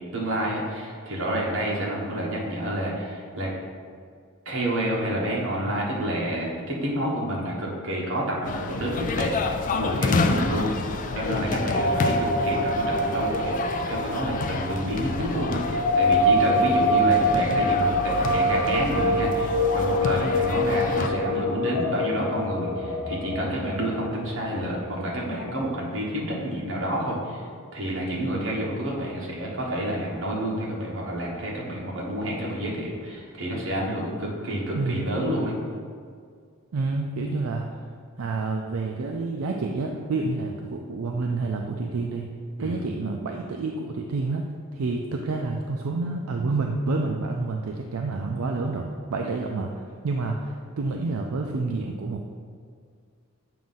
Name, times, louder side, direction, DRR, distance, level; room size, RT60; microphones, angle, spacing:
voice 1, 0.1-3.5 4.4-9.3 9.7-13.6 13.9-27.4 27.7-35.6 42.6-42.8 49.2-49.3, right 1 dB, 65° right, -4 dB, 1.3 m, -29 dB
sound 1, 8.4-21.1, left 4 dB, 40° left, 0.3 m, -29 dB
sound 2, 11.7-25.6, equal, 80° left, 0.7 m, -25 dB
voice 2, 34.7-35.1 36.7-37.8 38.2-42.3 42.6-44.4 44.7-52.3, right 3 dB, 85° right, 2 dB, 0.4 m, -28 dB
7.4 x 2.6 x 5.5 m, 2.1 s
head